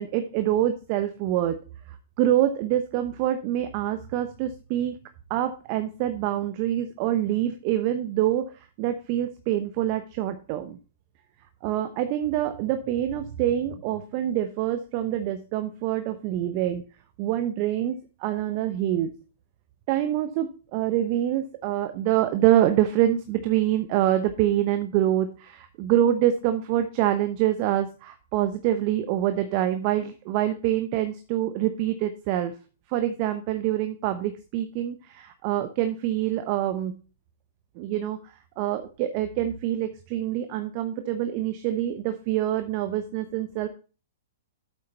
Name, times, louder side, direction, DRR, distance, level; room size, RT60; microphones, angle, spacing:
voice 1, 0.0-1.6 2.2-4.9 5.3-8.5 8.8-10.8 11.6-16.8 17.2-19.1 19.9-32.6 32.9-36.9 37.8-43.7, right 12 dB, 40° right, 9 dB, 0.9 m, -25 dB
8.6 x 8.1 x 4.2 m, 0.35 s
figure-of-eight pair, 110°, 0 cm